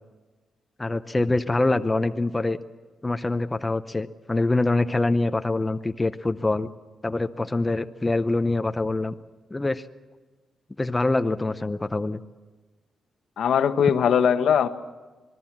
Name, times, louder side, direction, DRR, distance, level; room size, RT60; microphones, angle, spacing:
voice 1, 0.8-2.6 3.0-6.7 7.0-9.1 9.5-9.8 10.8-12.2, left 2 dB, 15° left, 8 dB, 0.7 m, -24 dB
voice 2, 13.4-14.7, left 8 dB, 70° left, 9 dB, 1.2 m, -20 dB
26.5 x 20.5 x 7.4 m, 1.3 s
wide cardioid pair, 140°, 0 cm